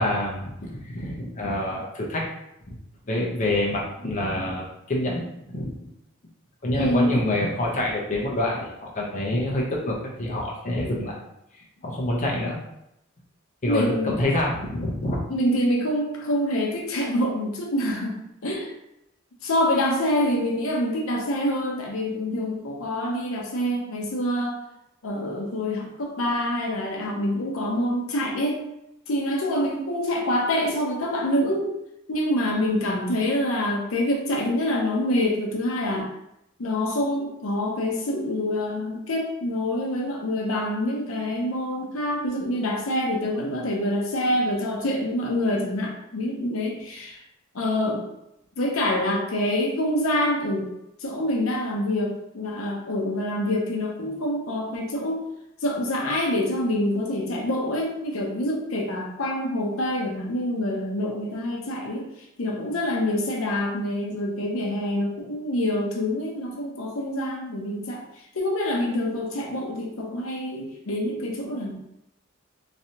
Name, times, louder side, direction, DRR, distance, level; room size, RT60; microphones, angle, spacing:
voice 1, 0.0-2.3 2.7-2.8 3.1-5.7 6.6-11.2 11.8-12.6 13.6-15.2, left 1 dB, 35° left, -3 dB, 0.6 m, -27 dB
voice 2, 6.7-7.1 13.6-14.2 15.3-18.2 18.4-18.7 19.4-24.6 25.0-28.6 29.1-31.7 32.1-36.1 36.6-47.2 47.5-48.0 48.6-50.7 51.0-55.2 55.6-71.8, left 1 dB, 75° left, 0 dB, 0.7 m, -26 dB
3.1 x 2.7 x 2.8 m, 0.83 s
head